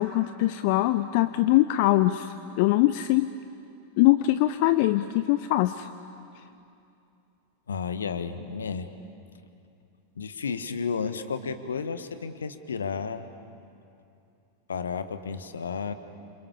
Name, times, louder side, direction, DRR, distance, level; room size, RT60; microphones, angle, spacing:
voice 1, 0.0-3.3 4.0-5.9, left 16 dB, 45° left, 13 dB, 0.6 m, -22 dB
voice 2, 7.7-8.9 10.1-13.3 14.7-15.9, left 5 dB, 70° left, 10 dB, 1.4 m, -32 dB
29.0 x 27.5 x 7.1 m, 2.6 s
figure-of-eight pair, 90°, 0 cm